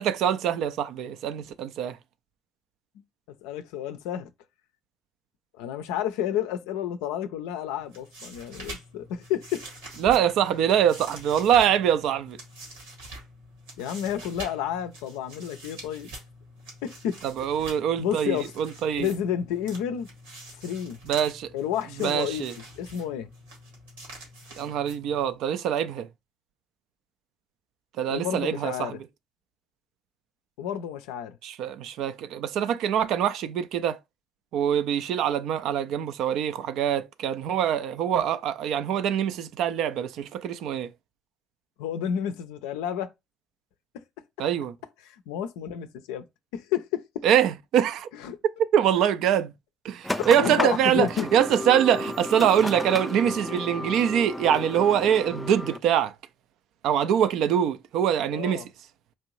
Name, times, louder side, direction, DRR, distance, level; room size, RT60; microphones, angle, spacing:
voice 1, 0.0-2.0 10.0-12.4 17.2-19.1 21.1-21.5 22.0-22.5 24.6-26.1 28.0-29.0 31.4-34.0 34.5-40.9 44.4-44.7 47.2-48.1 48.7-49.5 49.8-56.1 56.8-58.6, right 9 dB, 65° right, 0.4 m, -24 dB
voice 2, 3.4-4.3 5.5-9.6 13.8-16.1 16.8-17.2 17.6-18.5 19.0-20.1 20.6-21.0 21.5-22.5 22.8-23.3 28.1-29.0 30.6-31.4 41.8-43.1 45.0-46.2 46.5-47.0 48.1-48.4 50.2-51.3 58.3-58.7, left 9 dB, 75° left, 0.4 m, -30 dB
sound 1, 7.8-25.4, right 1 dB, 85° right, 1.6 m, -45 dB
sound 2, 50.0-55.8, left 1 dB, 5° left, 0.4 m, -33 dB
4.3 x 2.6 x 3.0 m
hypercardioid pair, 55°, 0 cm